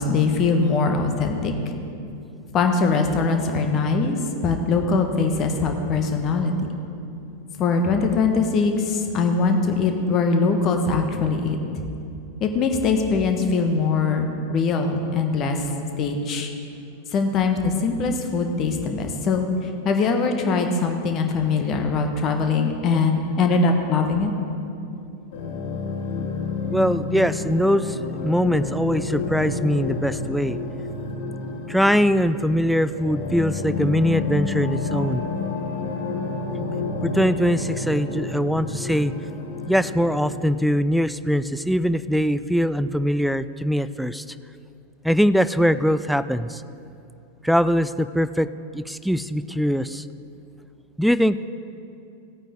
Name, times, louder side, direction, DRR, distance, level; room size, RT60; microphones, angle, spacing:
voice 1, 0.0-1.5 2.5-4.2 4.4-6.5 7.6-11.6 12.4-15.6 16.0-16.5 17.1-19.4 19.8-24.3, left 4 dB, 30° left, 4 dB, 1.2 m, -22 dB
sound 1, 25.3-40.6, left 3 dB, 55° left, 1.4 m, -29 dB
voice 2, 26.7-28.0 28.2-30.6 31.7-35.2 37.0-39.1 39.7-44.2 45.0-46.6 47.4-48.5 48.7-50.0 51.0-51.5, equal, ahead, 14 dB, 0.3 m, -22 dB
16.5 x 9.0 x 3.6 m, 2.6 s
figure-of-eight pair, 90°, 0 cm